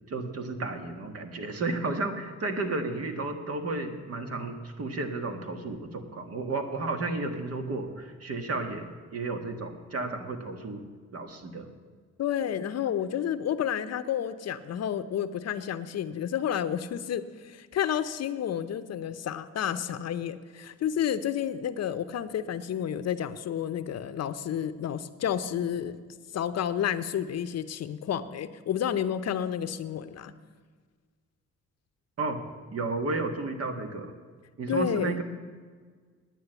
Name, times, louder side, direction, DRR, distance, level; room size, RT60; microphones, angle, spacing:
voice 1, 0.1-8.9 9.1-10.8 11.1-11.7 32.2-32.4 32.7-34.1 34.6-35.2, right 3 dB, 50° right, 6 dB, 1.7 m, -32 dB
voice 2, 12.2-26.1 26.3-30.3 34.7-35.2, left 9 dB, 60° left, 12 dB, 0.7 m, -30 dB
9.7 x 9.4 x 8.0 m, 1.5 s
cardioid pair, 90°, 30 cm